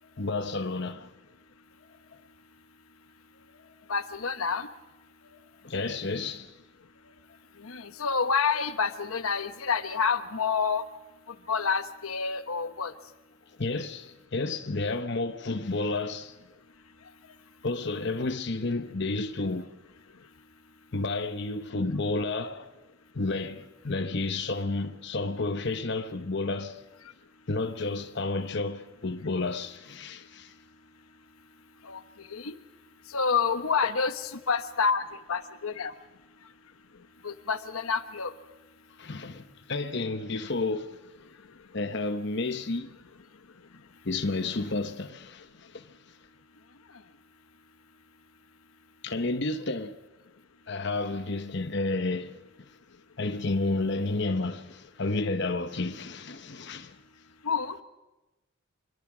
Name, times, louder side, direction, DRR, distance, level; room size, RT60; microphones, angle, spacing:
voice 1, 0.2-1.1 5.2-6.5 7.0-7.1 13.6-16.4 17.6-19.7 20.9-22.7 23.1-26.8 27.5-30.5 39.0-41.0 41.7-42.9 44.0-45.9 49.0-50.0 50.7-52.4 52.7-52.8 53.2-57.0, left 3 dB, 55° left, 1.0 m, -31 dB
voice 2, 3.9-4.7 7.6-10.8 11.3-12.9 31.8-32.0 32.3-32.5 33.1-35.0 35.3-35.9 37.2-38.3 57.4-57.8, left 5 dB, 85° left, 1.1 m, -28 dB
25.5 x 22.0 x 6.2 m
head